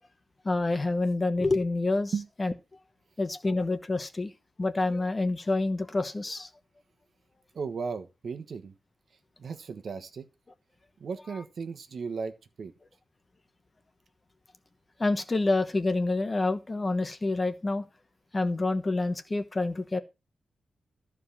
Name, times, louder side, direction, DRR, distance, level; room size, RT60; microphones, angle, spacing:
voice 1, 0.4-2.1 2.4-2.5 3.2-4.3 4.6-6.5 15.0-17.8 18.3-20.0, left 2 dB, 20° left, 1.1 m, -27 dB
voice 2, 7.5-8.7 9.4-10.3 11.0-12.7, right 5 dB, 50° right, 1.2 m, -35 dB
13.5 x 4.9 x 7.2 m
wide cardioid pair, 160°, 0 cm